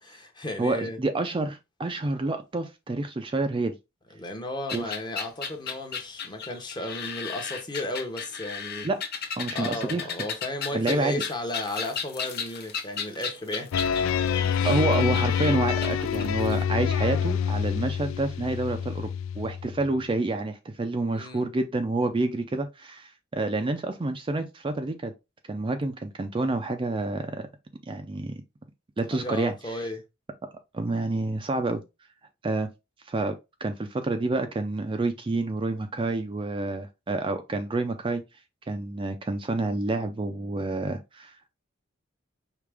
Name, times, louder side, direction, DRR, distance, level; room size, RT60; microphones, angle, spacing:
voice 1, 0.0-1.0 4.2-8.9 9.5-13.7 14.3-14.7 16.1-16.4 21.1-21.5 29.1-30.0, left 1 dB, 20° left, 0.9 m, -34 dB
voice 2, 0.6-3.8 4.7-4.9 8.8-9.0 9.4-10.1 10.7-11.2 14.6-25.1 25.5-27.5 27.9-28.4 29.0-29.8 30.7-31.8 32.4-32.7 33.1-33.4 33.6-38.2 38.7-41.3, right 2 dB, 25° right, 0.4 m, -28 dB
sound 1, 4.7-16.6, left 6 dB, 55° left, 0.8 m, -35 dB
sound 2, 13.7-19.9, left 8 dB, 70° left, 0.3 m, -26 dB
4.9 x 2.9 x 3.4 m
head